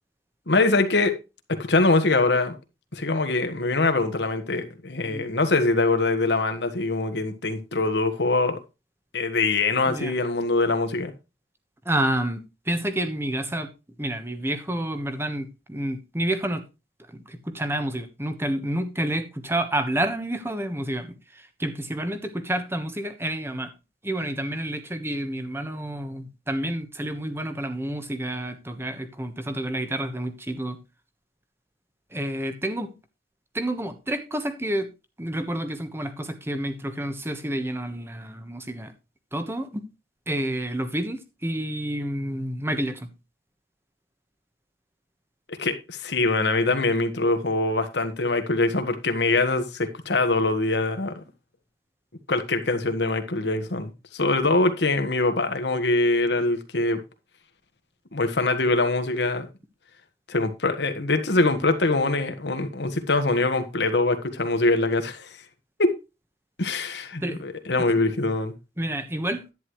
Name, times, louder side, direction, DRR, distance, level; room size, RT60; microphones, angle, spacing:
voice 1, 0.5-1.1 1.5-2.5 2.9-8.6 9.1-11.1 45.5-51.1 52.3-57.0 58.1-59.5 60.3-65.3 65.8-65.9 66.6-68.5, left 2 dB, 85° left, 1.5 m, -23 dB
voice 2, 11.8-13.7 14.0-16.6 17.1-23.7 24.0-30.8 32.1-32.9 33.5-34.9 35.2-38.9 39.3-39.8 40.3-43.1 67.2-67.4 68.8-69.4, right 1 dB, 15° right, 1.2 m, -29 dB
10.5 x 9.7 x 3.2 m
head